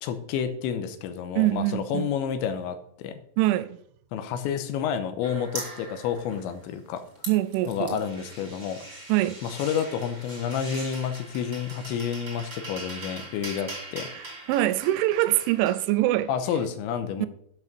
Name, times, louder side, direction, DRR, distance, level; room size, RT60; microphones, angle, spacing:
voice 1, 0.0-3.1 4.1-7.0 7.7-8.8 9.4-14.1 16.3-17.3, left 8 dB, 80° left, 3.1 m, -30 dB
voice 2, 1.4-2.1 3.4-3.8 7.3-8.0 9.1-9.4 14.1-16.3 17.2-17.3, right 15 dB, 85° right, 2.9 m, -24 dB
sound 1, 5.2-6.7 7.0-15.8, right 2 dB, 35° right, 1.0 m, -41 dB
9.3 x 6.0 x 6.6 m
omnidirectional pair, 5.5 m